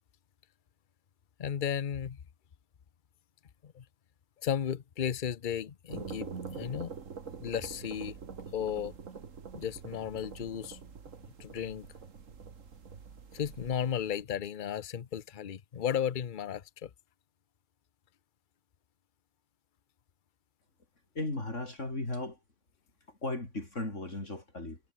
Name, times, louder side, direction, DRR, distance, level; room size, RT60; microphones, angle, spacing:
voice 1, 1.4-2.2 3.6-3.8 4.4-6.9 7.4-8.1 8.5-8.9 9.5-10.8 11.4-11.9 13.3-16.9, left 9 dB, 45° left, 0.9 m, -34 dB
sound 1, 5.9-14.2, right 6 dB, 70° right, 2.1 m, -45 dB
voice 2, 21.2-22.4 23.1-24.8, left 2 dB, 60° left, 5.4 m, -36 dB
omnidirectional pair, 1.4 m